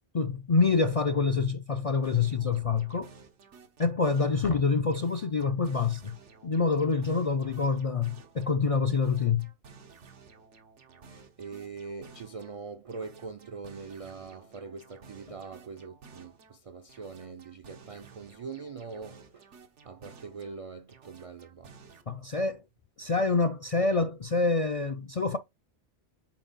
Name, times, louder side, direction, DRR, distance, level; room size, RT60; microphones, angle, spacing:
voice 1, 0.1-3.1 3.8-6.2 6.4-9.5 22.1-22.6 23.0-25.4, left 4 dB, 55° left, 0.4 m, -26 dB
sound 1, 2.0-4.6 4.9-8.6 8.9-12.6 12.9-16.6 16.9-20.6 20.9-22.0, right 5 dB, 90° right, 1.4 m, -54 dB
voice 2, 11.1-19.5 19.8-21.7, right 5 dB, 65° right, 0.3 m, -43 dB
7.4 x 4.5 x 4.0 m
omnidirectional pair, 1.2 m